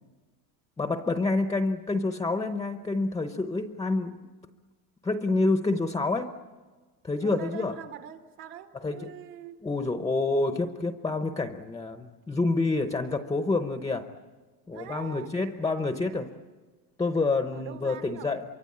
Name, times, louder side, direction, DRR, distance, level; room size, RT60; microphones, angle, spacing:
voice 1, 0.8-4.2 5.0-6.4 7.0-7.7 8.8-9.1 9.6-14.1 14.7-16.3 17.0-18.4, left 3 dB, 10° left, 8 dB, 0.8 m, -28 dB
voice 2, 7.2-9.6 14.7-15.4 17.5-18.4, right 9 dB, 65° right, 5 dB, 2.2 m, -43 dB
27.0 x 24.5 x 8.6 m, 1.4 s
cardioid pair, 155°, 44 cm